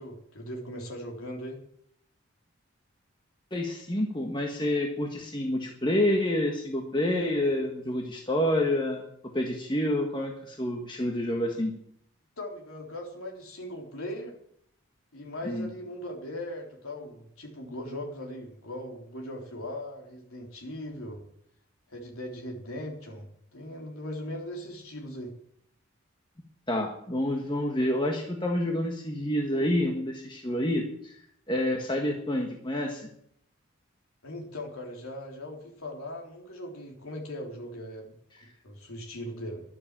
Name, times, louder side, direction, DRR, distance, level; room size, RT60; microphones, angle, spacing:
voice 1, 0.0-1.6 12.4-14.4 15.1-21.2 21.9-25.3 34.2-38.1 38.4-39.6, left 1 dB, 80° left, 0 dB, 3.6 m, -39 dB
voice 2, 3.5-9.0 9.3-11.7 15.4-15.7 26.7-31.2 31.5-33.1, left 1 dB, 20° left, 1 dB, 1.5 m, -28 dB
12.0 x 12.0 x 7.5 m, 0.69 s
head